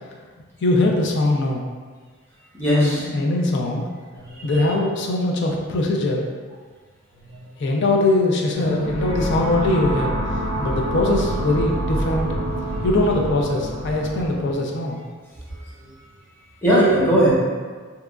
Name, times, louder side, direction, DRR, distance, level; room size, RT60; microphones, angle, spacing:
voice 1, 0.6-1.6 2.7-3.8 4.4-6.3 7.6-10.1 10.6-12.4 12.8-15.0, left 2 dB, 60° left, 0 dB, 0.4 m, -21 dB
voice 2, 2.5-3.1 4.2-4.7 7.2-7.5 15.5-15.9 16.6-17.3, right 1 dB, 10° left, -9 dB, 0.8 m, -20 dB
sound 1, 8.5-14.5, right 1 dB, 40° left, 0.9 m, -26 dB
2.8 x 2.2 x 2.3 m, 1.5 s
head